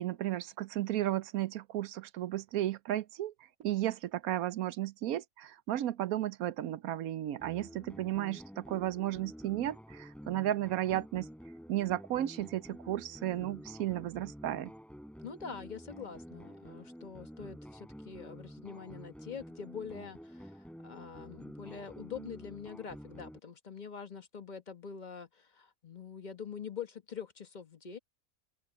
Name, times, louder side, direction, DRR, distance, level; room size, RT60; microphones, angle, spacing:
voice 1, 0.0-3.3 3.6-11.3 11.7-14.7, right 13 dB, 90° right, 1.1 m, -34 dB
sound 1, 7.4-23.4, equal, ahead, 3.3 m, -49 dB
voice 2, 15.2-28.0, left 6 dB, 35° left, 1.3 m, -45 dB
open air
omnidirectional pair, 1.5 m